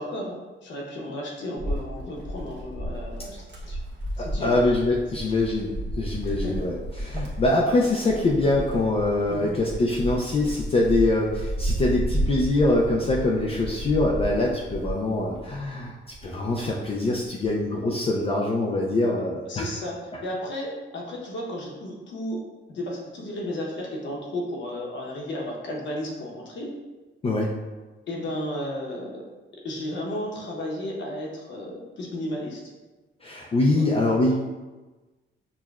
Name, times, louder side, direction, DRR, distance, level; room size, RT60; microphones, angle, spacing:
voice 1, 0.0-3.8 4.2-4.6 6.2-6.7 9.3-9.6 19.5-22.4 22.7-26.7 28.1-29.3 29.6-32.6 33.7-33.9, left 1 dB, 70° left, -2 dB, 0.9 m, -33 dB
Wind, 1.6-15.7 16.1-17.6, equal, 65° right, 1.0 m, -32 dB
voice 2, 4.2-16.0 16.2-19.6 27.2-27.5 33.2-34.5, left 2 dB, 30° left, -3 dB, 0.4 m, -24 dB
6.0 x 2.2 x 2.3 m, 1.2 s
cardioid pair, 130°, 20 cm